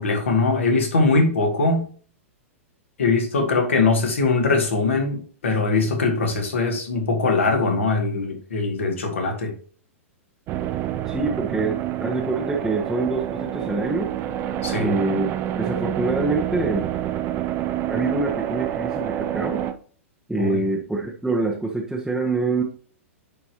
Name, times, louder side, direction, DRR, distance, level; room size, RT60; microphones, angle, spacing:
voice 1, 0.0-1.9 3.0-9.5 14.6-14.9 20.4-20.6, left 3 dB, 65° left, 3 dB, 2.2 m, -21 dB
sound 1, 10.5-19.7, right 11 dB, 30° right, 0.7 m, -28 dB
voice 2, 11.1-14.1 14.7-16.9 17.9-19.7 20.3-22.6, right 3 dB, 5° right, -3 dB, 1.0 m, -25 dB
9.8 x 4.6 x 2.9 m, 0.43 s
figure-of-eight pair, 105°, 7 cm